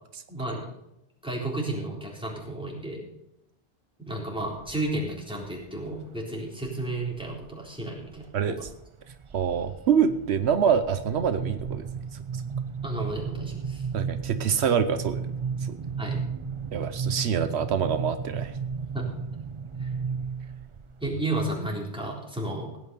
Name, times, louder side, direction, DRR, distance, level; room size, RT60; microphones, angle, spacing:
voice 1, 0.3-0.6 1.2-3.1 4.0-8.6 12.8-13.8 16.0-16.2 18.9-19.1 19.8-19.9 21.0-22.7, right 2 dB, 5° right, -3 dB, 3.8 m, -32 dB
sound 1, 4.4-5.0 5.4-6.0 6.7-7.5 7.9-8.3 8.6-21.2, right 6 dB, 40° right, 0.5 m, -34 dB
voice 2, 8.3-8.7 9.3-11.9 13.9-15.3 15.6-15.7 16.7-18.5, right 7 dB, 80° right, 10 dB, 1.0 m, -25 dB
16.5 x 9.2 x 5.4 m, 0.85 s
omnidirectional pair, 1.1 m